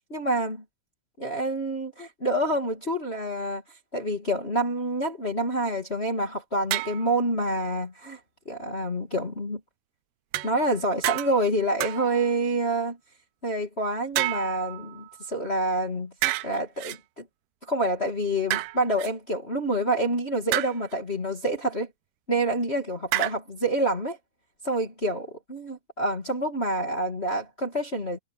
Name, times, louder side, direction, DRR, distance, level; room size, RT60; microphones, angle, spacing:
voice 1, 0.1-0.6 1.2-3.6 3.9-8.2 8.4-9.6 10.4-13.0 13.4-17.2 17.7-21.9 22.3-24.2 24.6-28.2, right 1 dB, 30° left, 1.2 m, -27 dB
sound 1, 6.7-7.1 10.3-10.8 11.0-11.5 11.8-12.3 14.2-15.2 16.2-17.0 18.5-19.1 20.5-20.9 23.1-23.3, right 18 dB, 90° right, 2.4 m, -29 dB
omnidirectional pair, 5.6 m